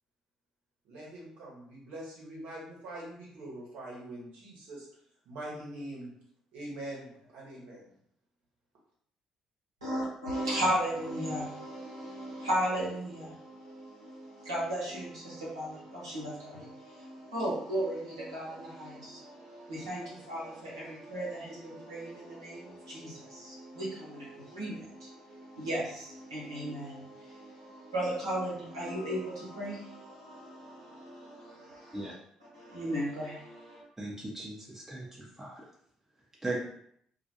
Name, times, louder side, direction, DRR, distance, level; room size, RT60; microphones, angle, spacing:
voice 1, 0.8-4.9 5.2-6.1 6.5-7.9, right 1 dB, 60° right, -4 dB, 0.9 m, -43 dB
voice 2, 9.8-32.1 32.5-33.8, right 1 dB, 85° right, -7 dB, 0.8 m, -36 dB
voice 3, 34.0-35.6 36.4-36.6, right 2 dB, 15° right, -4 dB, 0.6 m, -38 dB
2.3 x 2.2 x 2.8 m, 0.68 s
figure-of-eight pair, 45°, 3 cm